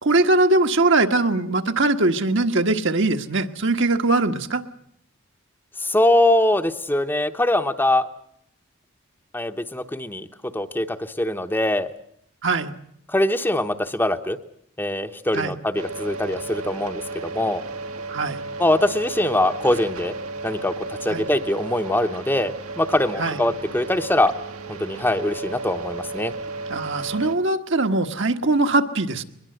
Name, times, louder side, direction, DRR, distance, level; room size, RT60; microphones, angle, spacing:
voice 1, 0.0-4.6 12.4-12.7 15.3-15.6 18.1-18.4 21.1-21.3 23.2-23.4 26.7-29.2, right 2 dB, 60° right, 6 dB, 1.5 m, -21 dB
voice 2, 5.8-8.1 9.3-10.3 10.5-11.9 13.1-14.4 14.8-17.6 18.6-20.1 20.4-24.3 24.7-26.3, left 1 dB, 10° left, 7 dB, 0.9 m, -22 dB
sound 1, 15.7-27.4, right 3 dB, 80° right, 2.1 m, -34 dB
22.5 x 21.0 x 7.9 m, 0.72 s
head